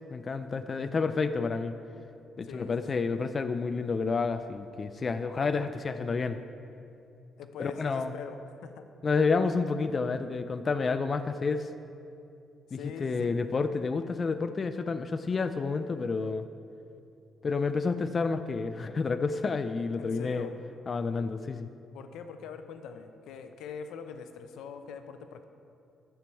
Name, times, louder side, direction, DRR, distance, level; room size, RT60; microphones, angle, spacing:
voice 1, 0.1-1.8 2.4-6.4 7.6-8.1 9.0-11.7 12.7-16.4 17.4-20.5 20.9-21.7, left 4 dB, 35° left, 10 dB, 0.3 m, -29 dB
voice 2, 2.4-2.8 7.4-8.4 8.6-8.9 9.3-9.4 12.7-13.3 20.0-20.6 21.9-25.4, left 6 dB, 85° left, 8 dB, 0.6 m, -42 dB
10.5 x 6.9 x 4.6 m, 2.6 s
cardioid pair, 130°, 0 cm